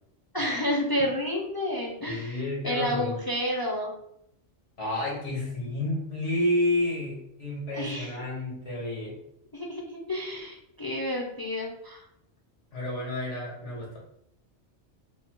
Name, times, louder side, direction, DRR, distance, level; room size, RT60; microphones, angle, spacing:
voice 1, 0.3-3.9 7.7-8.2 9.5-12.0, equal, 30° left, -2 dB, 0.4 m, -30 dB
voice 2, 2.1-3.2 4.8-9.2 12.7-14.0, left 1 dB, 90° left, -4 dB, 1.9 m, -30 dB
4.1 x 2.0 x 4.4 m, 0.75 s
omnidirectional pair, 1.2 m